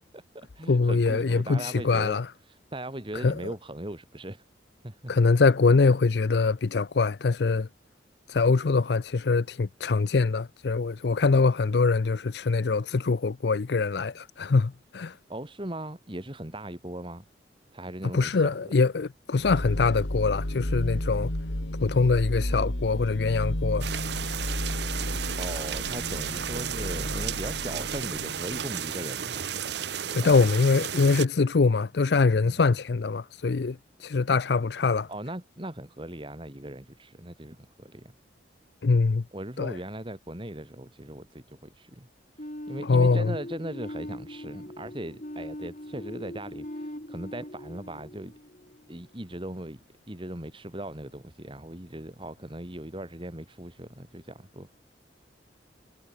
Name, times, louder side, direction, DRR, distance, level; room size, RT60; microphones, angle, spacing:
voice 1, 0.1-2.2 2.5-4.4 4.8-5.1 15.3-17.2 17.7-18.7 25.4-29.5 30.1-30.3 32.4-32.6 35.1-38.1 39.3-42.1 42.4-48.3 48.9-54.8, right 1 dB, 30° right, 2.6 m, -39 dB
voice 2, 0.7-2.3 3.1-3.4 5.1-7.7 8.3-15.1 18.1-21.3 21.8-23.9 30.1-35.1 38.8-39.2 39.6-39.8 42.8-43.3, left 4 dB, 60° left, 0.5 m, -23 dB
sound 1, 19.3-28.7, left 1 dB, 80° left, 2.8 m, -32 dB
sound 2, 23.8-31.3, right 8 dB, 65° right, 0.9 m, -33 dB
sound 3, 42.4-49.1, left 1 dB, 40° left, 3.1 m, -41 dB
head